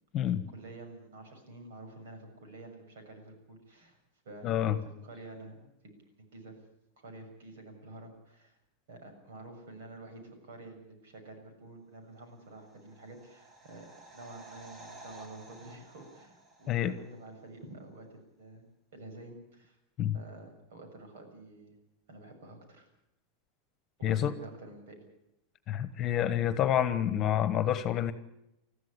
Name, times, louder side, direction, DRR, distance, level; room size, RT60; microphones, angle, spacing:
voice 1, 0.5-4.0 4.2-5.9 6.2-6.6 7.0-8.6 8.9-18.6 18.9-19.8 20.1-21.7 22.1-22.9 24.0-25.0, right 2 dB, 90° right, 6 dB, 6.9 m, -49 dB
voice 2, 4.4-4.8 16.7-16.9 20.0-20.2 24.0-24.3 25.7-28.1, left 10 dB, 35° left, 13 dB, 1.3 m, -28 dB
sound 1, 12.4-17.2 17.5-17.6, right 2 dB, 25° right, 3.4 m, -53 dB
21.0 x 14.0 x 10.0 m, 0.84 s
supercardioid pair, 145°, 0 cm